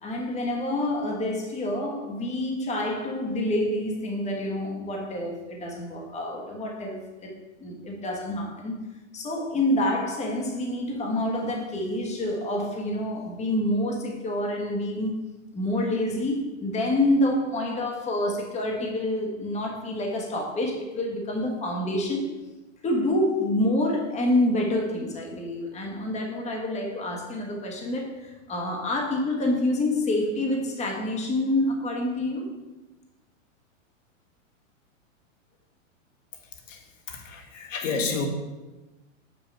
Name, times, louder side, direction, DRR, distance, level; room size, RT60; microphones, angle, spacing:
voice 1, 0.0-7.3 7.6-8.8 9.1-15.2 15.5-22.3 22.8-32.5, left 1 dB, 15° left, 1.3 m, -27 dB
voice 2, 36.7-38.3, left 5 dB, 70° left, 1.7 m, -31 dB
7.4 x 5.9 x 4.6 m
hypercardioid pair, 125°, 40 cm